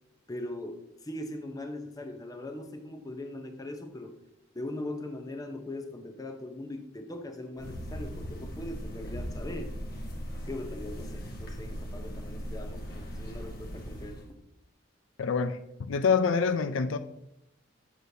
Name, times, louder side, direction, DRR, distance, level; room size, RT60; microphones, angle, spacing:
voice 1, 0.3-4.2 4.5-9.7 10.4-14.2, left 1 dB, 20° left, 0.7 m, -40 dB
sound 1, 7.6-14.3, equal, 50° left, 1.1 m, -39 dB
voice 2, 15.2-17.0, left 5 dB, 80° left, 0.4 m, -26 dB
7.9 x 6.2 x 2.7 m
head